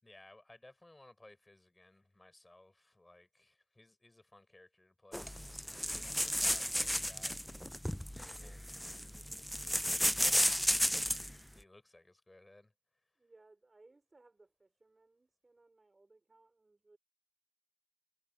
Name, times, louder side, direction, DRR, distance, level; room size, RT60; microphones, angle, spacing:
voice 1, 0.0-5.7 6.1-7.4 8.4-8.6 10.0-12.7, left 2 dB, 20° left, 7.4 m, -60 dB
sound 1, 5.1-11.3, equal, 5° left, 0.6 m, -33 dB
voice 2, 5.7-6.4 8.2-9.6 13.2-17.0, right 2 dB, 30° right, 5.3 m, -65 dB
cardioid pair, 55°, 0 cm